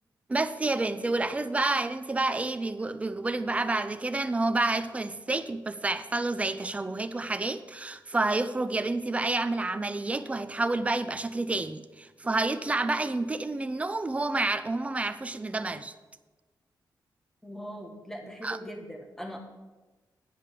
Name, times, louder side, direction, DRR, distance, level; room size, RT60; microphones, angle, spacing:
voice 1, 0.3-15.9 18.4-18.6, right 2 dB, 20° right, 0.5 m, -29 dB
voice 2, 17.4-19.4, equal, 5° left, 1.5 m, -40 dB
10.0 x 5.2 x 7.4 m
wide cardioid pair, 150°, 7 cm